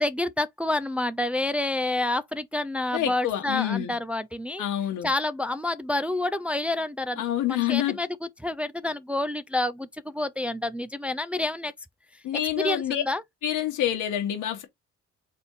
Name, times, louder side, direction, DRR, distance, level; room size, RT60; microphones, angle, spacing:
voice 1, 0.0-4.6 5.0-8.1 8.4-11.7 12.5-13.2, left 2 dB, 5° right, 0.3 m, -28 dB
voice 2, 2.9-3.9 4.6-5.1 7.2-8.0 12.2-13.0 13.4-14.6, left 11 dB, 85° left, 1.6 m, -27 dB
4.1 x 3.5 x 3.1 m
cardioid pair, 90°, 30 cm